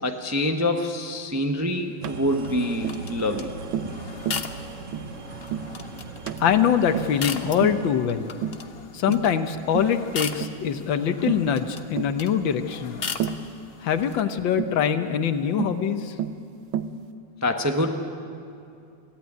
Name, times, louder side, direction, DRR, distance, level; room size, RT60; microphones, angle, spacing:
voice 1, 0.0-3.5 17.4-17.9, left 1 dB, 15° right, 4 dB, 0.7 m, -25 dB
sound 1, 2.0-7.9, right 4 dB, 50° right, 1.1 m, -39 dB
Tap, 2.0-2.2 2.8-3.0 3.7-4.0 4.3-4.5 4.9-5.1 5.5-5.7 6.3-6.5 6.9-7.2 7.6-7.9 8.4-8.7 9.1-9.3 9.7-10.0 10.4-10.6 11.3-11.5 12.0-12.2 13.2-13.5 14.6-14.8 15.6-15.8 16.2-16.4 16.7-17.0, right 9 dB, 90° right, 1.5 m, -30 dB
sound 2, 2.3-14.2, left 6 dB, 45° left, 0.8 m, -38 dB
voice 2, 6.4-8.3 8.9-13.0 13.8-16.1, left 8 dB, 75° left, 9 dB, 1.7 m, -23 dB
23.0 x 15.5 x 9.4 m, 2.6 s
omnidirectional pair, 2.1 m